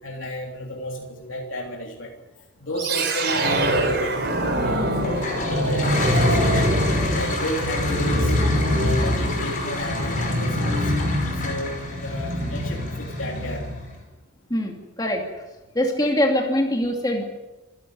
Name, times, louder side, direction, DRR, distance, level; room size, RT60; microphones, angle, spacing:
voice 1, 0.0-2.1 2.6-4.2 4.6-6.7 7.1-8.3 8.7-10.9 11.3-13.7, equal, 75° left, -1 dB, 3.2 m, -32 dB
sound 1, 2.8-13.9, equal, 55° right, 4.8 m, -24 dB
Toilet flush, 5.0-13.9, left 3 dB, 40° left, 5.5 m, -31 dB
voice 2, 14.5-15.2 15.7-17.2, left 1 dB, 20° left, 1 dB, 2.7 m, -23 dB
27.0 x 11.5 x 8.9 m, 1.1 s
head